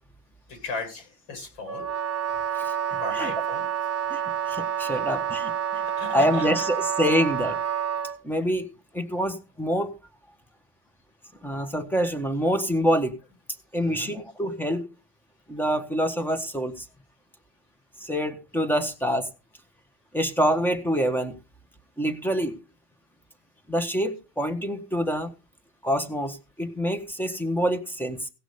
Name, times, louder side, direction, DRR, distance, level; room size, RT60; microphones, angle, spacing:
voice 1, 0.5-1.9 3.0-3.6 4.9-5.0 6.0-6.7 13.8-14.1, left 3 dB, 70° left, 7.8 m, -37 dB
Wind instrument woodwind instrument, 1.7-8.2, right 9 dB, 35° right, 1.1 m, -28 dB
voice 2, 4.5-7.6 8.2-8.7 8.9-9.9 11.4-13.1 13.7-14.9 15.5-16.8 18.0-19.3 20.1-21.4 22.0-22.6 23.7-25.3 25.8-28.3, equal, 5° left, 1.4 m, -26 dB
16.5 x 6.2 x 5.0 m
cardioid pair, 110°, 45 cm